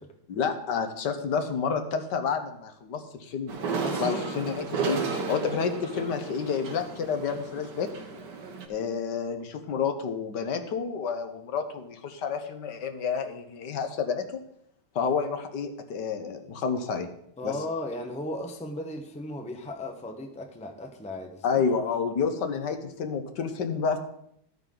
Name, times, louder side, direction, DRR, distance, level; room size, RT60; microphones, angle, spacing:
voice 1, 0.3-3.5 4.0-7.9 8.7-14.4 14.9-17.1 17.4-17.6 21.4-24.0, left 6 dB, 70° left, 8 dB, 1.6 m, -29 dB
sound 1, 3.5-8.7, right 4 dB, 70° right, 1.9 m, -33 dB
voice 2, 3.8-4.4 17.4-21.6, left 1 dB, 5° left, 3 dB, 0.8 m, -36 dB
13.5 x 9.1 x 3.9 m, 0.71 s
omnidirectional pair, 2.0 m